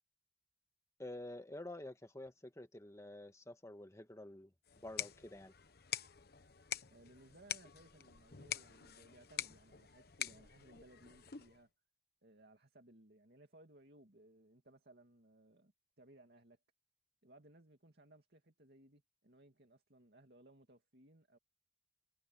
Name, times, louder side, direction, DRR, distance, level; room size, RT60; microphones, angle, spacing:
voice 1, 1.0-4.5 4.8-5.5, left 1 dB, 15° left, 1.5 m, -49 dB
sound 1, 4.7-11.6, left 10 dB, 60° left, 1.1 m, -46 dB
voice 2, 6.9-11.7 12.2-15.7 16.0-16.6 17.2-21.4, right 1 dB, 60° right, 2.5 m, -63 dB
head